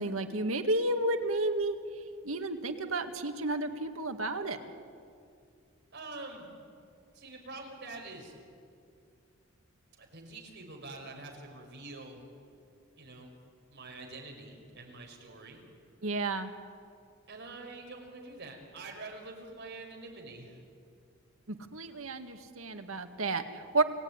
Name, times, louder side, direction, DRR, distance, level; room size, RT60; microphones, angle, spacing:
voice 1, 0.0-1.8 2.2-4.6 16.0-16.5 21.5-23.8, right 2 dB, 85° right, 6 dB, 2.0 m, -31 dB
voice 2, 5.9-6.5 7.1-8.3 10.0-12.2 13.0-13.3 13.7-15.6 17.3-20.6, right 3 dB, 55° right, 2 dB, 5.3 m, -46 dB
29.5 x 18.5 x 9.7 m, 2.4 s
head